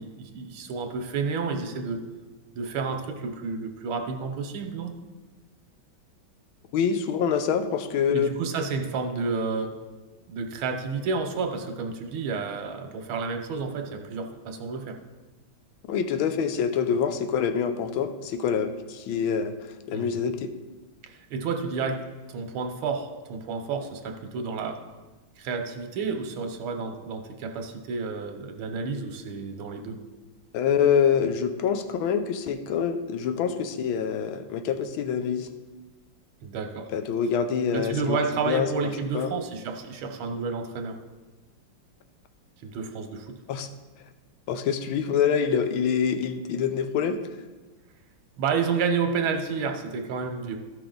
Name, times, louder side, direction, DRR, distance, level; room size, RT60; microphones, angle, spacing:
voice 1, 0.0-2.0 2.6-4.9 8.1-9.7 10.3-15.0 19.9-20.1 21.3-24.8 25.4-30.0 36.4-36.9 37.7-41.0 42.6-43.4 48.4-50.6, right 5 dB, 90° right, 5 dB, 1.7 m, -30 dB
voice 2, 6.7-8.3 15.9-19.5 19.9-20.5 30.5-35.5 36.9-38.2 38.5-38.7 39.1-39.3 43.5-43.7 44.5-47.2, left 7 dB, 90° left, 9 dB, 1.5 m, -25 dB
14.0 x 5.8 x 3.9 m, 1.2 s
omnidirectional pair, 2.2 m